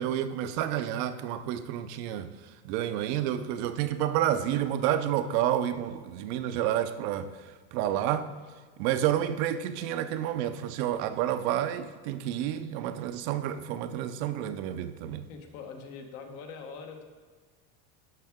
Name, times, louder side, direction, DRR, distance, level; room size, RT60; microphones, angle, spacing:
voice 1, 0.0-8.3 8.8-15.3, right 11 dB, 70° right, 11 dB, 0.7 m, -30 dB
voice 2, 15.3-17.0, left 5 dB, 70° left, 4 dB, 1.3 m, -43 dB
12.0 x 5.8 x 3.6 m, 1.5 s
cardioid pair, 145°, 34 cm